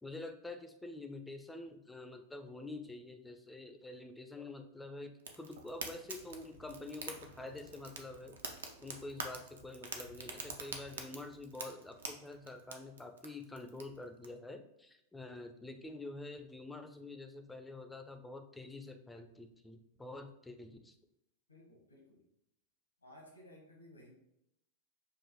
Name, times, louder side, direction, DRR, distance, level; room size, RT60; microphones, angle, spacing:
voice 1, 0.0-8.4 8.8-21.0, left 2 dB, 5° left, 6 dB, 0.4 m, -47 dB
Fire, 5.3-14.3, right 4 dB, 70° right, 0.5 m, -47 dB
voice 2, 21.5-22.2 23.0-24.1, left 1 dB, 85° left, -1 dB, 1.1 m, -57 dB
5.5 x 2.5 x 2.9 m, 0.81 s
figure-of-eight pair, 90°, 0 cm